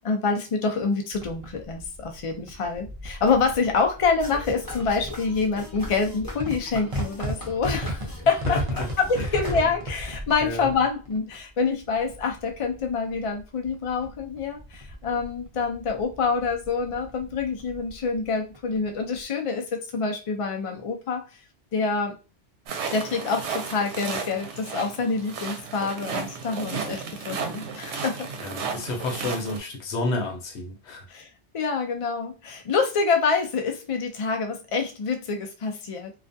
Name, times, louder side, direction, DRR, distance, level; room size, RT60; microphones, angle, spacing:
voice 1, 0.0-8.6 9.0-19.7 19.9-21.2 21.7-22.2 22.9-28.3 31.1-31.3 31.5-36.1, left 4 dB, 55° left, 0.4 m, -26 dB
sound 1, 1.1-19.3, equal, 40° right, 0.6 m, -37 dB
sound 2, 4.2-10.0, left 1 dB, 20° left, 0.9 m, -40 dB
voice 2, 8.5-8.9 9.1-9.3 10.4-10.7 28.4-31.1, left 2 dB, 80° left, 1.0 m, -30 dB
sound 3, 22.7-29.6, right 5 dB, 85° right, 0.9 m, -33 dB
2.4 x 2.2 x 2.5 m
omnidirectional pair, 1.2 m